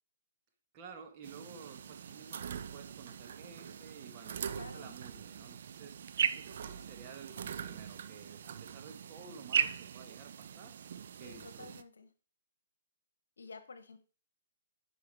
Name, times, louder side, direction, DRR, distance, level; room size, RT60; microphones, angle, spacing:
voice 1, 0.7-10.7 11.2-11.7, right 6 dB, 35° right, 4 dB, 1.4 m, -52 dB
sound 1, 1.2-11.8, right 8 dB, 55° right, 0.4 m, -39 dB
voice 2, 4.5-4.9 11.2-12.1 13.4-14.0, left 4 dB, 70° left, 11 dB, 1.0 m, -50 dB
9.8 x 5.0 x 3.4 m, 0.39 s
figure-of-eight pair, 125°, 0 cm